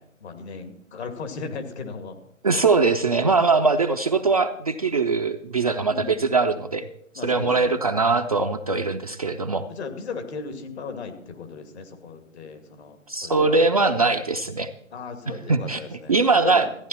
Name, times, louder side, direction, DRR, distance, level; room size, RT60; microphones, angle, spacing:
voice 1, 0.0-2.1 2.5-2.6 5.9-6.3 7.1-7.8 9.7-13.8 14.9-16.2 16.4-16.7, left 5 dB, 55° left, 6 dB, 2.5 m, -36 dB
voice 2, 2.4-6.9 7.2-9.7 13.1-14.7 15.3-15.8 16.1-16.7, right 3 dB, 30° right, 5 dB, 0.4 m, -21 dB
14.5 x 10.5 x 4.2 m, 0.73 s
figure-of-eight pair, 140°, 39 cm